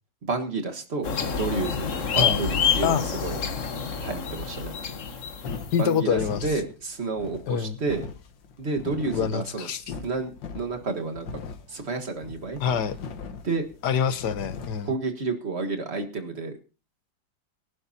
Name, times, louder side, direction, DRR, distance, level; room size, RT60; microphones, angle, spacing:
voice 1, 0.2-3.4 4.0-4.8 5.8-8.1 8.6-9.7 10.0-11.3 11.7-12.6 13.4-13.7 14.8-16.6, right 3 dB, 35° right, 5 dB, 1.7 m, -30 dB
sound 1, 1.0-5.9, left 6 dB, 50° left, 1.4 m, -28 dB
sound 2, 5.0-14.9, left 5 dB, 85° left, 2.0 m, -40 dB
voice 2, 5.7-6.5 7.5-7.8 9.1-9.9 12.6-12.9 13.8-14.9, left 7 dB, 70° left, 13 dB, 1.5 m, -26 dB
24.0 x 11.0 x 2.8 m, 0.31 s
omnidirectional pair, 2.0 m